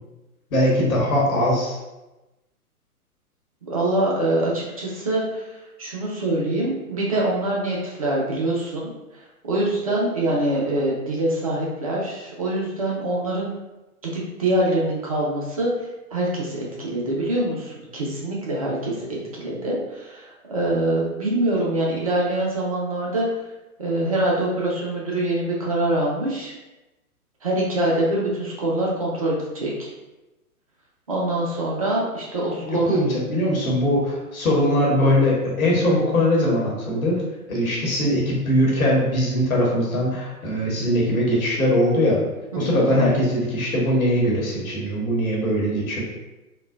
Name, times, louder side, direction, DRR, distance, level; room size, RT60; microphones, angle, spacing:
voice 1, 0.5-1.8 32.6-37.2 37.5-42.2 42.5-46.0, equal, 65° left, -4 dB, 1.2 m, -21 dB
voice 2, 3.7-13.5 14.0-23.3 23.8-26.5 27.4-29.9 31.1-33.0 42.5-43.1, right 1 dB, 25° right, -4 dB, 0.4 m, -24 dB
3.6 x 2.2 x 2.3 m, 1.0 s
figure-of-eight pair, 120°, 45 cm